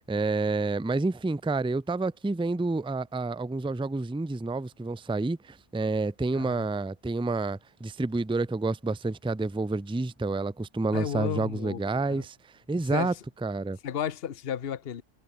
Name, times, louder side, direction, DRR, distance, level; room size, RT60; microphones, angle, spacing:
voice 1, 0.1-12.4 12.7-13.1 13.4-13.8, right 3 dB, 5° right, 0.4 m, -29 dB
voice 2, 6.3-6.7 10.9-12.3 12.9-13.2 13.8-15.0, left 8 dB, 55° left, 1.2 m, -33 dB
omnidirectional pair, 1.2 m